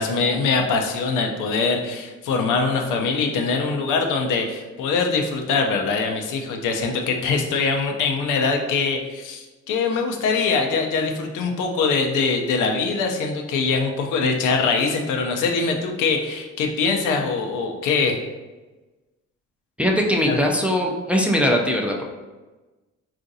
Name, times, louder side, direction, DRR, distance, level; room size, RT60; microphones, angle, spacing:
voice 1, 0.0-18.2 20.3-20.4, left 4 dB, 85° left, 3 dB, 0.6 m, -23 dB
voice 2, 19.8-22.0, equal, 5° right, 0 dB, 0.4 m, -20 dB
3.8 x 2.4 x 2.6 m, 1.2 s
cardioid pair, 90°, 30 cm